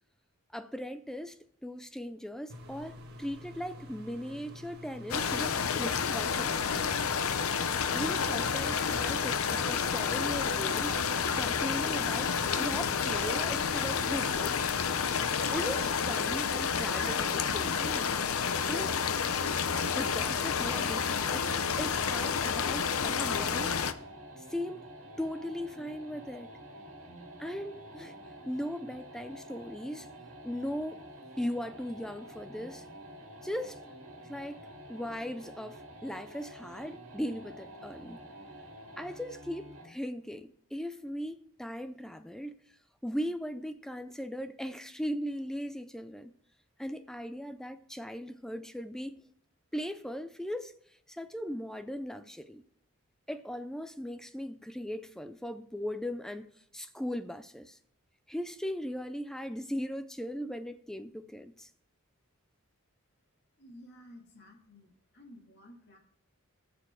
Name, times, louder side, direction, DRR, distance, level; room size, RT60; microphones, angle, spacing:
voice 1, 0.5-7.0 7.9-14.6 15.5-18.1 18.7-19.0 19.9-23.7 24.4-24.8 25.2-26.5 27.4-28.1 28.5-30.1 30.4-31.0 31.4-32.8 33.4-33.9 34.3-34.6 34.9-38.2 39.0-42.5 43.0-46.3 46.8-49.1 49.7-50.7 51.1-52.6 53.3-57.8 58.3-61.7, equal, ahead, 0.4 m, -38 dB
sound 1, 2.5-15.4, left 1 dB, 45° right, 1.5 m, -48 dB
sound 2, 5.1-23.9, left 6 dB, 75° left, 0.7 m, -30 dB
sound 3, 23.0-40.0, right 1 dB, 65° right, 2.4 m, -49 dB
voice 2, 63.6-66.0, left 1 dB, 50° left, 2.3 m, -53 dB
17.5 x 6.9 x 3.8 m
head